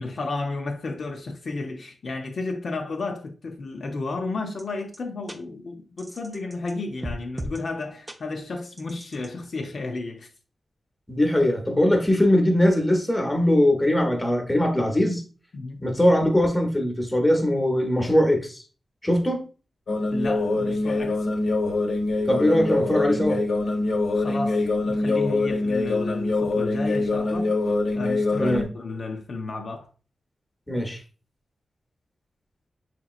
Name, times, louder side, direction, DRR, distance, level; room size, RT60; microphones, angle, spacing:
voice 1, 0.0-10.3 15.5-15.8 20.1-21.3 24.1-27.5 27.9-29.9, left 3 dB, 55° left, 0.5 m, -32 dB
sound 1, 4.6-4.7 4.9-5.0 5.3-5.4 6.0-6.7 7.0-7.6 8.1-8.2 8.8-9.3, equal, 20° right, 0.5 m, -36 dB
voice 2, 11.1-15.2 15.8-18.6 19.0-19.4 22.3-23.4 28.4-28.7 30.7-31.0, left 1 dB, 10° left, 0.8 m, -21 dB
sound 2, 19.9-28.6, left 2 dB, 90° left, 0.9 m, -24 dB
5.8 x 2.9 x 2.3 m
wide cardioid pair, 140°, 0 cm